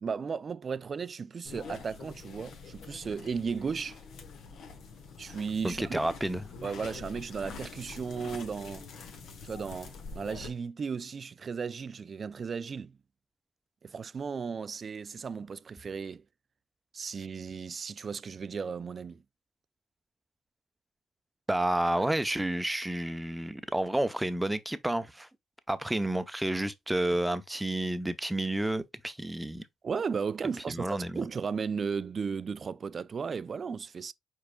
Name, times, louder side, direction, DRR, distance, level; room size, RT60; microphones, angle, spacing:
voice 1, 0.0-4.0 5.2-6.0 6.6-8.9 9.4-12.9 13.8-16.2 16.9-19.2 29.8-34.1, right 5 dB, 40° right, 0.3 m, -35 dB
sound 1, 1.5-10.5, left 5 dB, 70° left, 1.3 m, -45 dB
voice 2, 5.6-6.7 21.5-25.3 25.7-29.6 30.7-31.3, right 1 dB, 10° right, 0.6 m, -30 dB
4.8 x 4.8 x 2.2 m
cardioid pair, 90°, 0 cm